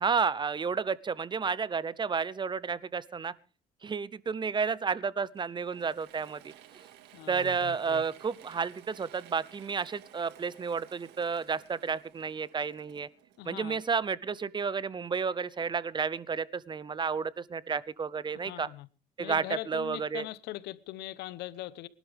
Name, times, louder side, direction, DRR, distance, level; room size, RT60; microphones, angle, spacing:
voice 1, 0.0-3.3 3.8-6.5 7.3-13.1 13.4-18.7 19.2-20.3, right 5 dB, 25° right, 0.7 m, -31 dB
Mechanisms / Drill, 5.3-13.9, right 12 dB, 85° right, 2.0 m, -55 dB
voice 2, 7.1-8.0 13.4-13.8 18.4-18.9 19.2-21.9, left 15 dB, 85° left, 0.9 m, -41 dB
23.0 x 12.0 x 3.5 m
cardioid pair, 110°, 17 cm